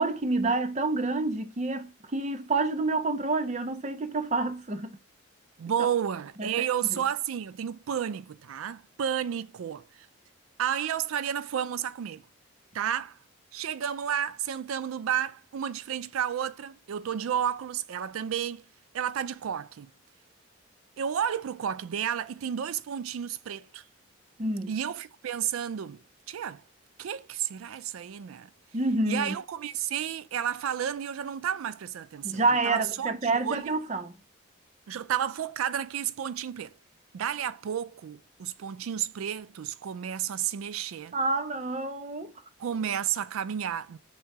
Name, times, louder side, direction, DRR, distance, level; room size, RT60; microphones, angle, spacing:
voice 1, 0.0-4.9 6.4-6.5 6.9-7.0 24.4-24.7 28.7-29.4 32.2-34.2 41.1-42.3, right 3 dB, 35° right, 0.6 m, -28 dB
voice 2, 5.6-10.1 10.6-12.2 12.7-13.2 13.5-18.6 18.9-19.9 21.0-23.8 24.7-26.6 27.0-28.5 29.0-33.8 34.9-36.7 37.1-41.1 42.6-44.0, right 9 dB, 85° right, 0.4 m, -32 dB
3.7 x 3.0 x 4.5 m
head